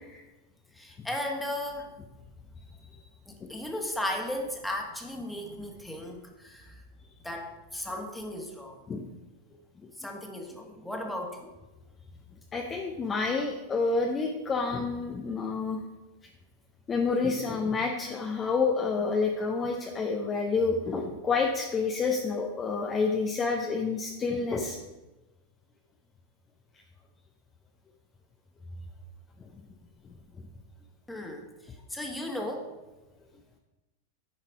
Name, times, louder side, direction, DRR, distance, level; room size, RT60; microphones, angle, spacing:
voice 1, 0.7-1.9 3.3-6.8 7.2-8.8 10.0-11.5 31.1-32.7, left 1 dB, 5° left, 1 dB, 1.5 m, -36 dB
voice 2, 12.5-15.8 16.9-24.8, left 4 dB, 20° left, 2 dB, 0.7 m, -29 dB
9.0 x 5.7 x 4.7 m, 1.1 s
figure-of-eight pair, 90°, 0 cm